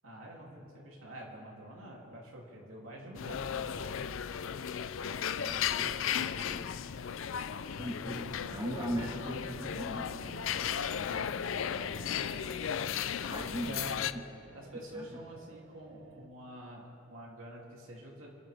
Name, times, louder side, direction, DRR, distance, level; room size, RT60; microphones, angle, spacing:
voice 1, 0.0-3.9 13.3-14.0 14.5-18.3, right 1 dB, 85° right, -3 dB, 3.0 m, -47 dB
sound 1, 3.1-14.1, left 8 dB, 70° left, 0.5 m, -35 dB
voice 2, 5.4-6.7 7.8-11.9 12.3-12.9 13.2-14.2 14.9-15.1, right 1 dB, 25° right, -1 dB, 1.8 m, -41 dB
sound 2, 8.4-16.3, right 4 dB, 70° right, 0.8 m, -53 dB
28.5 x 11.0 x 3.5 m, 2.8 s
head